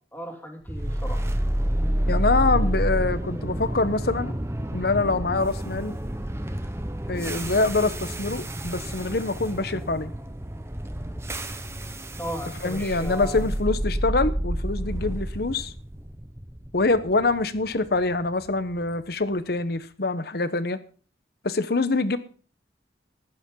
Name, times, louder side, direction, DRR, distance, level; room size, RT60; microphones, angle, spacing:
voice 1, 0.1-1.2 12.2-13.5, equal, 10° left, 2 dB, 2.6 m, -35 dB
sound 1, 0.7-18.8, right 1 dB, 15° right, 1.0 m, -29 dB
voice 2, 2.1-4.3 4.7-5.9 7.1-10.1 12.6-15.7 16.7-20.8 21.4-22.2, left 3 dB, 60° left, 13 dB, 1.0 m, -25 dB
14.5 x 11.5 x 3.8 m, 0.41 s
head